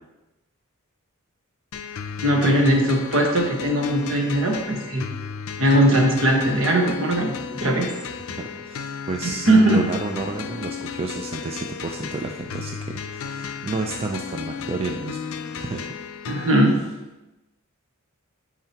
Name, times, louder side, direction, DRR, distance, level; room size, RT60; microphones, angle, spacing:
sound 1, 1.7-16.7, left 6 dB, 80° left, 0.5 m, -34 dB
voice 1, 2.2-5.1 5.6-7.3 7.6-7.9 9.2-9.8 16.3-16.8, right 1 dB, 65° right, 0 dB, 1.3 m, -19 dB
voice 2, 8.3-9.5 9.7-15.2 15.6-15.9 16.7-16.8, right 3 dB, 30° right, 3 dB, 0.4 m, -31 dB
8.9 x 4.8 x 2.9 m, 1.0 s
head